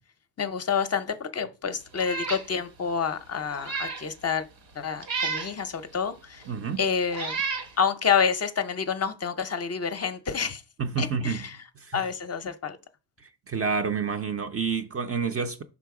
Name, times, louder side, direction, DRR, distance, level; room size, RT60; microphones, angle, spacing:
voice 1, 0.4-4.5 4.8-6.4 6.8-7.4 7.8-10.6 11.0-11.6 11.9-12.8, left 6 dB, 35° left, 0.6 m, -28 dB
Meow, 2.0-2.5 2.9-3.0 3.5-4.1 5.0-5.5 6.4-6.5 7.1-7.7, right 5 dB, 80° right, 1.5 m, -31 dB
voice 2, 6.5-6.8 10.8-11.4 11.8-12.0 13.5-15.6, right 5 dB, 35° right, 0.5 m, -28 dB
5.7 x 3.8 x 4.7 m
cardioid pair, 140°, 44 cm